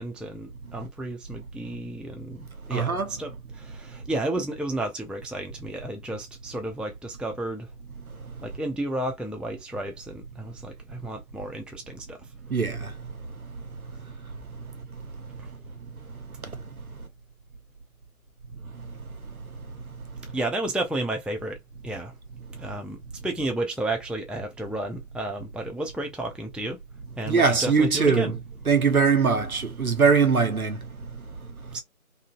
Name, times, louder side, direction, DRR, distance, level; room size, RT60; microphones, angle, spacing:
voice 1, 0.0-2.9 3.2-7.7 8.4-12.2 15.4-15.5 20.3-21.6 21.8-22.1 22.6-23.0 23.2-26.8 27.2-28.3 31.7-31.8, right 1 dB, ahead, 0.3 m, -32 dB
voice 2, 2.7-3.1 8.2-8.4 12.5-15.5 15.8-17.1 18.6-20.4 22.5-22.6 27.2-31.8, right 5 dB, 70° right, 0.9 m, -26 dB
2.7 x 2.5 x 2.3 m
figure-of-eight pair, 160°, 44 cm